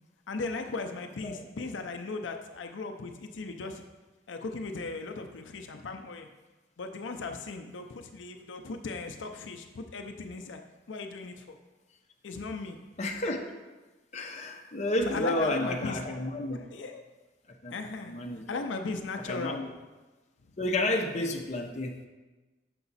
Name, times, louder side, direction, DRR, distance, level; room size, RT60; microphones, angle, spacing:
voice 1, 0.3-3.8 4.3-6.3 6.8-10.6 10.9-11.6 12.2-12.8 15.1-16.0 16.7-17.0 17.7-18.1 18.5-19.6, left 3 dB, 90° left, 5 dB, 0.5 m, -37 dB
voice 2, 13.0-13.4 14.1-16.6 17.6-18.5 19.3-19.7 20.6-22.0, left 1 dB, 40° left, 2 dB, 0.8 m, -31 dB
6.8 x 5.7 x 4.1 m, 1.2 s
head